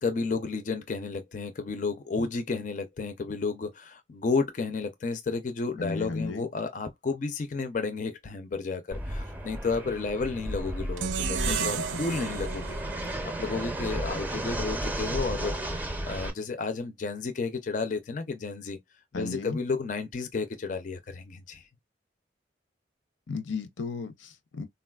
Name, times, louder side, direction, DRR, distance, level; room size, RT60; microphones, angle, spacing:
voice 1, 0.0-12.8 13.4-18.8 19.1-21.6, left 4 dB, 40° left, 0.4 m, -32 dB
voice 2, 5.8-6.5 11.5-11.7 19.1-19.6 23.3-24.7, left 4 dB, 85° left, 0.6 m, -34 dB
Fixed-wing aircraft airplane, 8.9-16.3, right 1 dB, 10° right, 0.5 m, -33 dB
sound 1, 11.0-14.2, right 8 dB, 85° right, 0.4 m, -34 dB
3.8 x 2.3 x 2.2 m
head